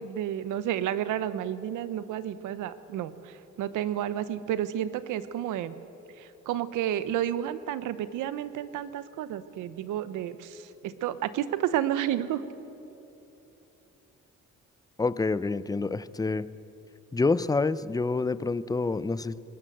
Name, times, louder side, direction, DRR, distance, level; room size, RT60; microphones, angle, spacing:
voice 1, 0.0-5.7 6.2-12.4, right 11 dB, 90° right, 14 dB, 1.0 m, -31 dB
voice 2, 15.0-16.5 17.1-19.4, left 3 dB, 10° left, 17 dB, 0.5 m, -27 dB
20.0 x 20.0 x 7.8 m, 3.0 s
cardioid pair, 90°, 30 cm